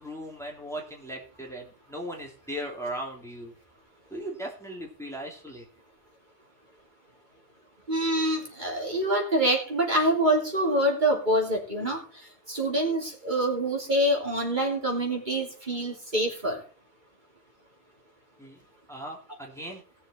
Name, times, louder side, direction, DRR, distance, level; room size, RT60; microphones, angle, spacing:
voice 1, 0.0-3.5 4.1-5.7 18.4-18.6 18.9-19.8, right 1 dB, ahead, -1 dB, 2.8 m, -38 dB
voice 2, 7.9-12.0 12.5-16.6, right 1 dB, 40° right, -1 dB, 3.3 m, -26 dB
18.5 x 7.1 x 4.4 m, 0.37 s
omnidirectional pair, 1.2 m